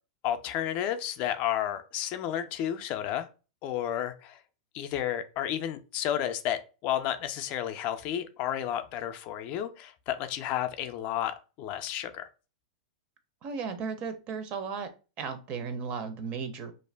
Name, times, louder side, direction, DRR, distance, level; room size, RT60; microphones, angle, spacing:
voice 1, 0.2-3.3 3.6-4.4 4.7-12.3, left 11 dB, 45° left, 9 dB, 0.3 m, -32 dB
voice 2, 13.4-14.9 15.2-16.7, right 5 dB, 40° right, 8 dB, 0.5 m, -35 dB
2.5 x 2.1 x 3.2 m, 0.32 s
hypercardioid pair, 125°, 4 cm